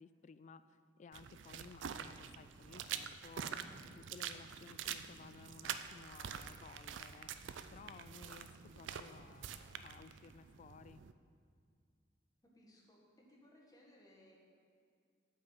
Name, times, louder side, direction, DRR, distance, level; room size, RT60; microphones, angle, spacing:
voice 1, 0.0-3.6 3.9-7.3 7.7-11.0, left 5 dB, 40° left, 13 dB, 0.3 m, -57 dB
sound 1, 1.1-11.1, right 8 dB, 90° right, 0.4 m, -46 dB
voice 2, 12.5-14.4, left 1 dB, 20° left, -3 dB, 1.6 m, -63 dB
8.9 x 5.5 x 7.6 m, 2.2 s
head